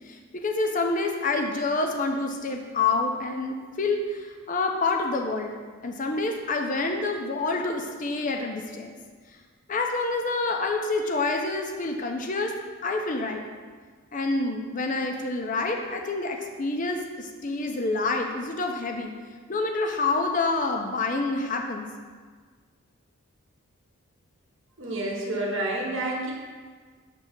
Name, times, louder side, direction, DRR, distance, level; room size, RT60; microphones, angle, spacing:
voice 1, 0.0-5.6 5.8-9.0 9.7-12.5 12.8-13.5 14.1-19.1 19.5-21.9, left 3 dB, 35° left, 3 dB, 0.6 m, -27 dB
voice 2, 24.8-26.3, right 1 dB, 55° right, -2 dB, 1.0 m, -29 dB
6.1 x 3.3 x 5.8 m, 1.5 s
head